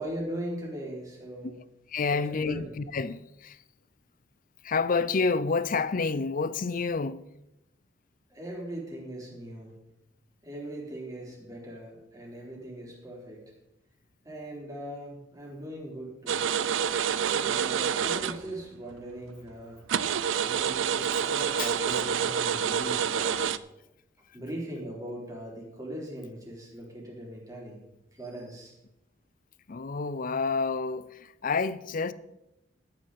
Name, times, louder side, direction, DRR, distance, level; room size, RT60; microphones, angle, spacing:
voice 1, 0.0-1.6 2.1-2.7 8.3-9.8 10.4-13.4 14.2-16.4 17.1-19.8 20.4-23.5 24.3-27.8 28.1-28.7, right 1 dB, 20° right, 3.6 m, -39 dB
voice 2, 1.9-3.6 4.6-7.2 21.6-21.7 29.7-32.1, left 4 dB, 45° left, 0.5 m, -29 dB
sound 1, 16.3-18.6 18.9-19.0 19.5-19.6 19.9-23.6, right 8 dB, 80° right, 0.4 m, -28 dB
13.5 x 9.5 x 4.2 m
head